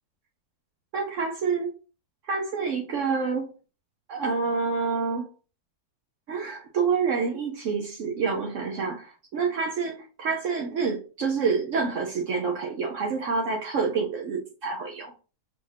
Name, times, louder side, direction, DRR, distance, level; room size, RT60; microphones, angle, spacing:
voice 1, 0.9-1.7 2.3-3.5 4.1-5.3 6.3-15.1, right 5 dB, 65° right, 0.8 m, -27 dB
4.9 x 2.5 x 3.3 m
omnidirectional pair, 1.7 m